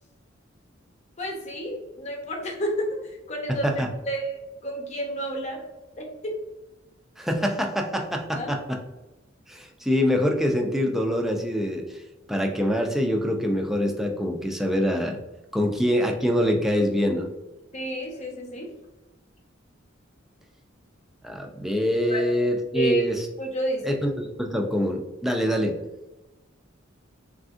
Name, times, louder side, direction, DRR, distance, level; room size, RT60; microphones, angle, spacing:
voice 1, 1.2-3.7 4.0-5.6 6.0-6.4 8.3-8.5 17.7-18.7 22.1-22.2 22.7-23.0 23.4-24.0, right 1 dB, 35° left, 1 dB, 0.7 m, -30 dB
voice 2, 7.2-8.8 9.5-11.8 12.3-15.2 15.5-17.3 21.2-23.3 23.9-25.8, equal, ahead, 2 dB, 0.3 m, -25 dB
3.5 x 2.4 x 2.4 m, 1.0 s
head